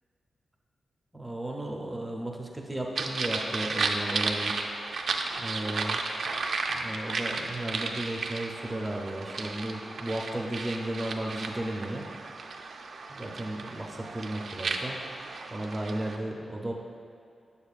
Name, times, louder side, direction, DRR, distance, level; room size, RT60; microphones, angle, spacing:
voice 1, 1.1-4.8 5.3-6.0 6.7-12.1 13.1-15.0 15.5-16.7, right 1 dB, 10° right, -1 dB, 0.6 m, -34 dB
sound 1, 3.0-16.2, right 3 dB, 55° right, 0.4 m, -34 dB
8.6 x 6.8 x 2.4 m, 2.4 s
wide cardioid pair, 170°, 0 cm